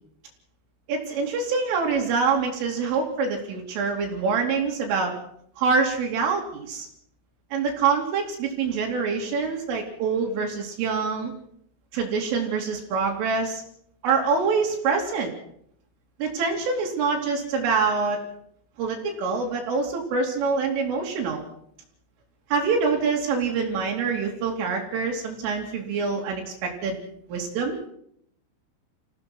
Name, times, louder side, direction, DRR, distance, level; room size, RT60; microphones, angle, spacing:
voice 1, 0.9-5.1 5.6-6.9 7.5-11.3 11.9-13.6 14.0-15.3 16.2-18.2 18.8-21.5 22.5-27.0 27.3-27.8, right 5 dB, 80° right, 0 dB, 5.5 m, -25 dB
26.0 x 16.5 x 6.2 m, 0.68 s
omnidirectional pair, 5.7 m